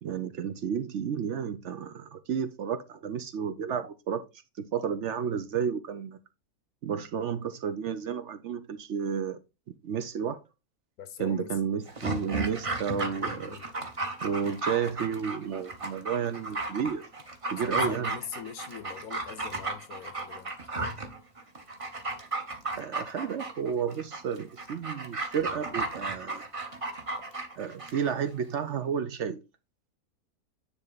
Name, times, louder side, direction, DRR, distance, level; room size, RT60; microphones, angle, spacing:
voice 1, 0.0-4.2 4.6-6.2 6.8-9.4 9.8-10.4 11.2-13.6 14.2-17.1 17.5-18.1 22.8-26.5 27.6-29.4, right 7 dB, 60° right, 0.9 m, -32 dB
voice 2, 11.0-11.6 13.3-13.7 17.6-20.5, left 8 dB, 85° left, 1.3 m, -42 dB
Dog, 11.9-28.1 28.4-28.5, right 2 dB, 25° right, 0.9 m, -34 dB
9.7 x 3.3 x 4.0 m
omnidirectional pair, 1.5 m